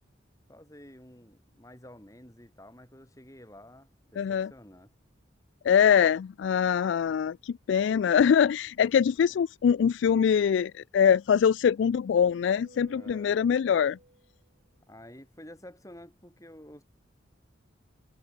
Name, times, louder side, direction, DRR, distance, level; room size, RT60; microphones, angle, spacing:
voice 1, 0.5-4.9 8.8-9.4 12.8-13.3 14.9-16.8, left 1 dB, 15° left, 4.6 m, -50 dB
voice 2, 4.2-4.5 5.6-14.0, left 7 dB, 70° left, 0.3 m, -23 dB
sound 1, 11.6-14.4, right 1 dB, 50° right, 2.8 m, -54 dB
head